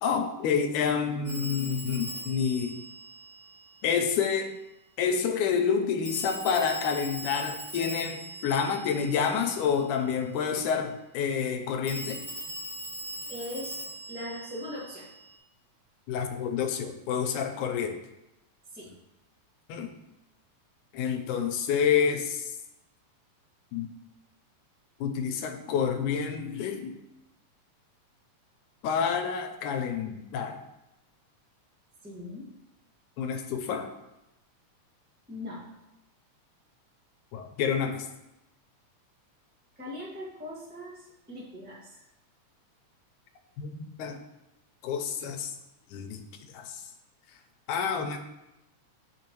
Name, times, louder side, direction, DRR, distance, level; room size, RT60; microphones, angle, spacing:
voice 1, 0.0-2.8 3.8-4.5 5.0-12.2 16.1-18.0 19.7-19.9 20.9-22.5 23.7-23.9 25.0-27.0 28.8-30.6 33.2-33.9 37.3-38.1 43.6-44.2 44.8-45.5 45.9-46.2 46.5-46.8 47.7-48.2, left 7 dB, 85° left, 5 dB, 2.2 m, -28 dB
Telephone, 1.2-3.9 6.0-9.7 11.9-15.3, right 1 dB, 25° right, 2.8 m, -40 dB
voice 2, 13.3-13.8 14.1-15.1 18.7-18.9 32.0-32.5 35.3-35.6 39.8-42.0, left 1 dB, 5° right, -6 dB, 0.7 m, -40 dB
9.2 x 5.2 x 3.0 m, 0.90 s
omnidirectional pair, 3.5 m